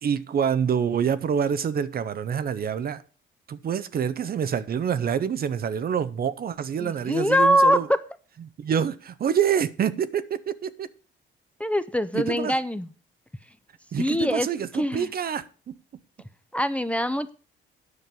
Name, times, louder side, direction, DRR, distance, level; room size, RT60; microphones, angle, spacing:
voice 1, 0.0-3.0 3.5-7.9 8.6-10.9 12.1-12.5 13.9-15.7, right 8 dB, 50° right, 0.7 m, -26 dB
voice 2, 6.8-8.0 11.6-12.9 14.0-14.5 14.7-15.1 16.5-17.3, equal, 5° left, 0.7 m, -23 dB
9.6 x 5.3 x 7.4 m
cardioid pair, 90°, 20 cm